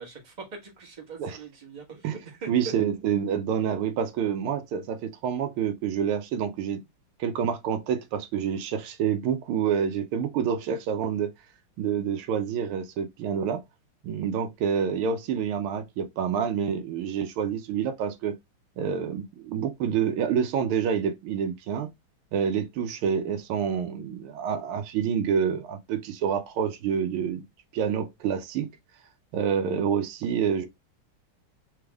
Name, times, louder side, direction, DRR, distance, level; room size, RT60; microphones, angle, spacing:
voice 1, 0.0-2.7, right 4 dB, 25° right, 1.4 m, -41 dB
voice 2, 2.5-6.8 7.2-11.3 11.8-13.6 14.0-18.3 18.8-21.9 22.3-27.4 27.7-28.7 29.3-30.7, right 7 dB, 85° right, 1.6 m, -27 dB
4.1 x 3.4 x 3.4 m
omnidirectional pair, 2.3 m